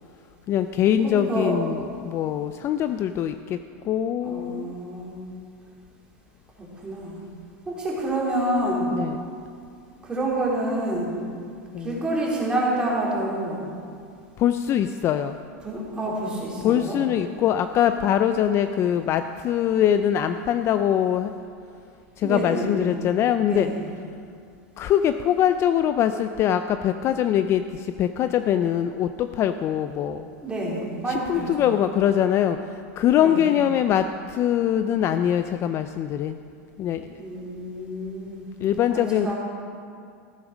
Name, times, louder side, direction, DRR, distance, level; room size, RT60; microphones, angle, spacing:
voice 1, 0.5-3.6 3.8-4.8 8.9-9.2 11.7-12.0 14.4-15.4 16.6-21.3 22.2-23.7 24.8-30.3 31.1-36.4 36.8-37.2 38.6-39.3, left 10 dB, 35° left, 10 dB, 0.4 m, -23 dB
voice 2, 1.0-1.6 4.2-5.2 6.6-7.2 7.7-9.0 10.0-11.1 11.8-13.6 15.6-17.0 22.2-22.9 23.5-23.8 30.4-31.8 33.1-33.5 37.2-38.4 38.9-39.3, right 1 dB, 10° right, -5 dB, 3.5 m, -28 dB
15.0 x 8.4 x 6.2 m, 2.3 s
supercardioid pair, 135°, 8 cm